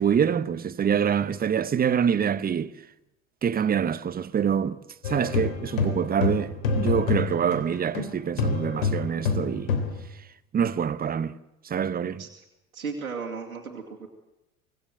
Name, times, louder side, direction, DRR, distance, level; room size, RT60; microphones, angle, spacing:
voice 1, 0.0-2.7 3.4-9.7 10.5-11.4 11.6-12.2, right 8 dB, 20° right, 1.0 m, -25 dB
sound 1, 5.0-8.1 8.4-10.0, left 5 dB, 65° left, 3.6 m, -27 dB
voice 2, 12.7-14.1, right 5 dB, 80° right, 2.5 m, -35 dB
25.5 x 17.5 x 7.8 m
figure-of-eight pair, 70°, 42 cm